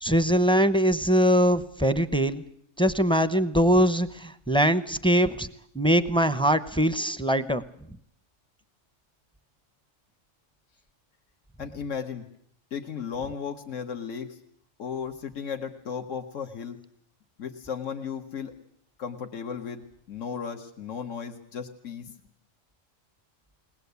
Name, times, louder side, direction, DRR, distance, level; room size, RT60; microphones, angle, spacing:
voice 1, 0.0-2.4 2.8-5.5 5.7-7.6, equal, 5° left, 12 dB, 0.6 m, -22 dB
voice 2, 11.6-12.3 12.7-14.4 14.8-16.8 17.4-18.5 19.0-22.1, left 7 dB, 75° left, 3 dB, 1.6 m, -35 dB
21.0 x 19.5 x 8.2 m, 0.66 s
omnidirectional pair, 1.3 m